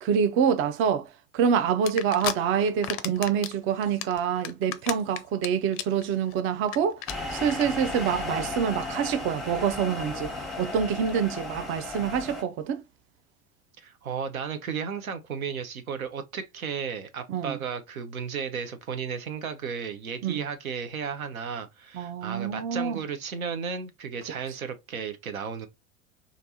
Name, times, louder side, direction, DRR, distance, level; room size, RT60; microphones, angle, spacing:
voice 1, 0.0-7.0 7.3-12.8 17.3-17.6 20.2-20.4 21.9-23.0, right 7 dB, 30° right, 0.5 m, -26 dB
sound 1, 1.9-2.3 2.7-3.5 3.8-5.5 5.7-6.0 6.3-6.4 6.6-6.8 7.0-7.1 7.5-7.6, left 12 dB, 35° left, 0.5 m, -32 dB
sound 2, 7.1-12.4, left 2 dB, ahead, 1.0 m, -35 dB
voice 2, 13.8-25.7, right 6 dB, 80° right, 0.8 m, -34 dB
3.3 x 2.5 x 4.1 m
figure-of-eight pair, 75°, 41 cm